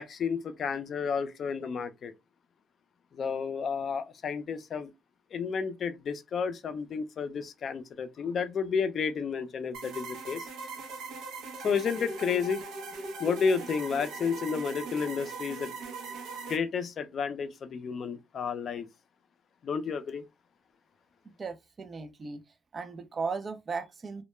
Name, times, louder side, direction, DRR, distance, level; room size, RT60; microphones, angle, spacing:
voice 1, 0.0-2.1 3.1-4.9 5.3-10.5 11.6-12.6 13.2-15.8 16.5-18.9 19.6-20.2, left 6 dB, 55° left, 0.4 m, -31 dB
sound 1, 9.7-16.6, right 3 dB, 85° right, 0.6 m, -40 dB
voice 2, 21.4-22.4 22.7-24.2, right 4 dB, 40° right, 0.4 m, -36 dB
2.2 x 2.1 x 3.0 m
cardioid pair, 90°, 0 cm